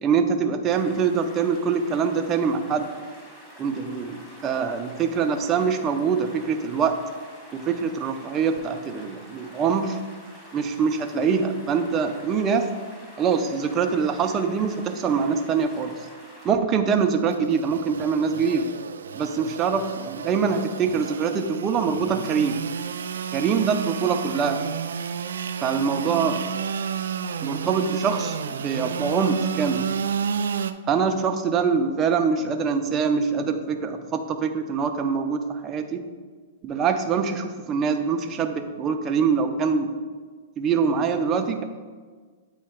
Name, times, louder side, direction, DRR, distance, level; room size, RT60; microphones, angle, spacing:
voice 1, 0.0-2.9 3.6-7.0 7.5-10.0 10.5-12.7 13.2-15.9 16.4-18.7 19.1-22.6 23.3-24.6 25.6-26.5 27.4-29.9 30.9-36.0 36.6-39.9 40.6-41.6, right 6 dB, 25° right, 6 dB, 0.5 m, -24 dB
sound 1, 0.6-16.5, equal, 15° left, 1.6 m, -47 dB
Engine / Sawing, 16.9-30.7, right 7 dB, 90° right, 0.3 m, -31 dB
8.4 x 2.8 x 4.5 m, 1.5 s
hypercardioid pair, 145°, 0 cm